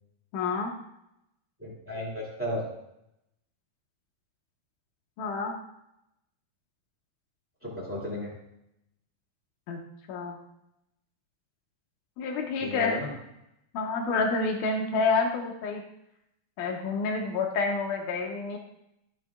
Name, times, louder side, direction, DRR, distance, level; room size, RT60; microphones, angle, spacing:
voice 1, 0.3-0.7 5.2-5.5 9.7-9.8 10.1-10.4 12.2-13.0 13.7-15.8 16.6-18.6, left 4 dB, 85° left, 2 dB, 1.8 m, -28 dB
voice 2, 1.6-2.7 7.6-8.3 12.6-13.1, left 1 dB, 10° right, -6 dB, 0.6 m, -34 dB
13.0 x 7.2 x 2.4 m, 0.82 s
omnidirectional pair, 4.7 m